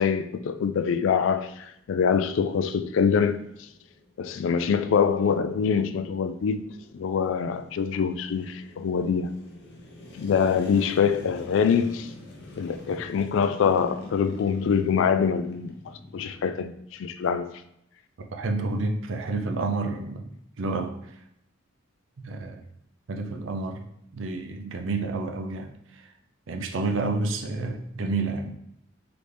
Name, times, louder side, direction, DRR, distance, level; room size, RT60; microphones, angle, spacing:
voice 1, 0.0-3.4 4.2-6.7 6.9-9.3 10.1-12.1 12.6-17.5, left 6 dB, 70° left, 0.3 m, -24 dB
sound 1, 1.5-16.6, left 2 dB, 55° left, 0.7 m, -46 dB
voice 2, 18.3-20.3 20.6-21.2 22.2-22.6 23.1-23.8 24.1-26.1 26.5-28.5, right 3 dB, 70° right, 0.5 m, -29 dB
3.9 x 3.3 x 3.3 m
head